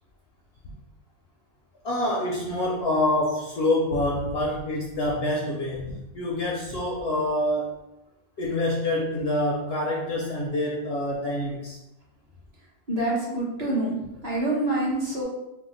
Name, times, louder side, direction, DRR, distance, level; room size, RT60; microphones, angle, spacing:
voice 1, 1.8-7.7 8.4-11.8, left 1 dB, 65° left, -3 dB, 0.6 m, -26 dB
voice 2, 12.9-15.2, right 2 dB, 35° right, -6 dB, 0.8 m, -26 dB
2.7 x 2.2 x 3.8 m, 0.95 s
omnidirectional pair, 1.4 m